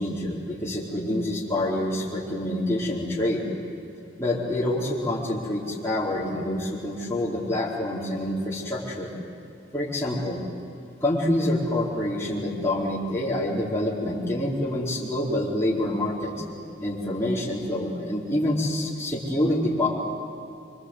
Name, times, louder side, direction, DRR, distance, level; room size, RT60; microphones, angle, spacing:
voice 1, 0.0-3.4 4.2-9.1 9.7-10.4 11.0-16.4 16.8-19.9, left 1 dB, 15° left, -6 dB, 4.6 m, -27 dB
27.0 x 24.0 x 8.2 m, 2.8 s
head